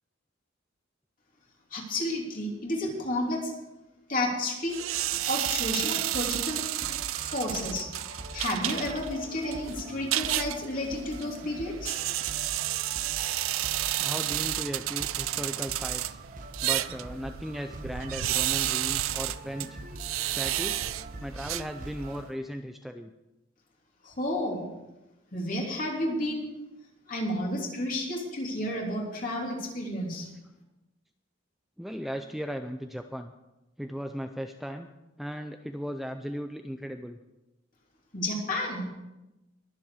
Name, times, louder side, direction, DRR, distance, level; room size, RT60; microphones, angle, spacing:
voice 1, 1.7-3.5 4.1-4.9 5.3-6.9 7.2-7.9 8.3-12.0 24.0-24.7 25.3-26.4 27.1-30.3 38.1-38.9, left 1 dB, 40° left, -1 dB, 3.1 m, -31 dB
sound 1, 4.7-22.2, right 14 dB, 85° right, 0.5 m, -32 dB
sound 2, 4.9-22.3, right 1 dB, 40° right, 1.1 m, -44 dB
voice 2, 14.0-16.2 16.6-19.8 20.3-20.9 21.2-23.1 31.8-33.3 33.8-34.9 35.2-37.2, equal, ahead, 6 dB, 0.4 m, -37 dB
21.5 x 7.6 x 4.9 m, 0.99 s
head